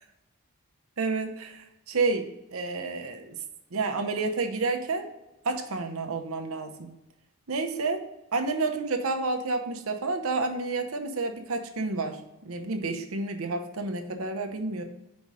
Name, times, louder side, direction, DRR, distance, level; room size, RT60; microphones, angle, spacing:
voice 1, 1.0-3.4 3.7-5.1 5.4-6.9 7.5-8.1 8.3-12.2 12.4-14.8, right 3 dB, 70° right, 5 dB, 0.8 m, -30 dB
5.2 x 4.8 x 5.3 m, 0.95 s
head